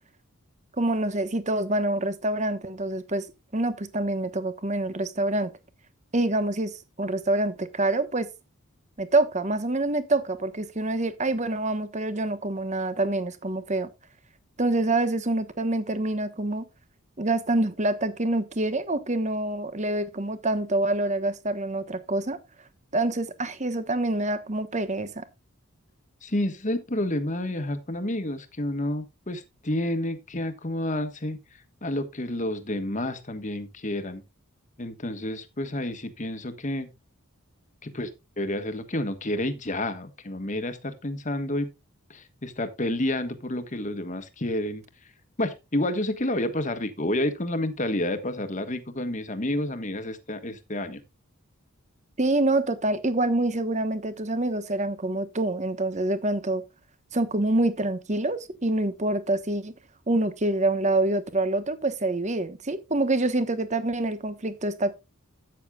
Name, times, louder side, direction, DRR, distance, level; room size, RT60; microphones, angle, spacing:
voice 1, 0.8-3.3 3.5-5.5 6.1-8.3 9.0-13.9 14.6-16.6 17.2-22.4 22.9-25.3 52.2-56.6 57.1-59.7 60.1-64.9, right 2 dB, 35° right, 1.2 m, -26 dB
voice 2, 26.2-34.2 34.8-36.9 37.8-41.7 42.1-45.1 45.4-51.0, left 1 dB, 35° left, 1.4 m, -30 dB
13.5 x 9.2 x 2.4 m
head